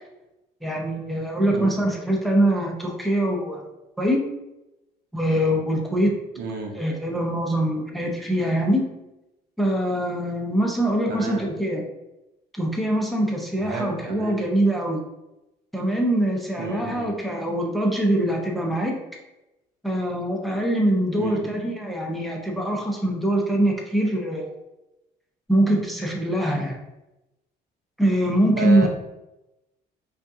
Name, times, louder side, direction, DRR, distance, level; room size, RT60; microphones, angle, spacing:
voice 1, 0.6-3.7 4.0-4.2 5.1-6.2 6.7-8.8 9.6-11.8 12.5-15.0 15.7-19.0 19.8-24.5 25.5-26.8 28.0-28.9, right 1 dB, ahead, 0 dB, 0.8 m, -23 dB
voice 2, 1.5-1.9 6.4-6.8 11.1-11.5 13.6-14.4 16.6-17.1 21.2-21.4 28.6-28.9, right 2 dB, 70° right, 2 dB, 0.8 m, -31 dB
5.1 x 2.4 x 2.7 m, 0.95 s
cardioid pair, 110°, 17 cm